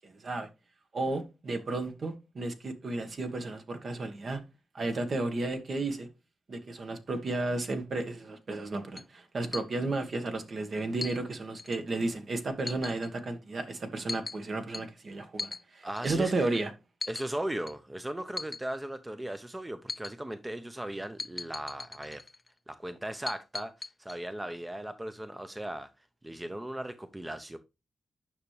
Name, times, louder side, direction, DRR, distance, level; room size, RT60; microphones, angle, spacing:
voice 1, 0.0-0.5 0.9-4.4 4.7-6.1 6.5-16.7, right 2 dB, 50° right, 1.5 m, -33 dB
sound 1, 9.0-9.1 9.5-9.7 11.0-11.2 11.6-11.8 12.7-13.1 14.1-14.4 14.7-14.8 15.4-15.6 16.0-16.1 17.0-17.3 17.7-17.8 18.4-18.6 19.9-20.1 21.2-22.5 23.3-24.1, left 3 dB, 30° left, 0.3 m, -38 dB
voice 2, 15.8-16.6 17.1-22.2 22.7-25.9 26.2-27.6, right 1 dB, 15° right, 0.7 m, -37 dB
9.4 x 5.9 x 3.3 m
cardioid pair, 85°, 0 cm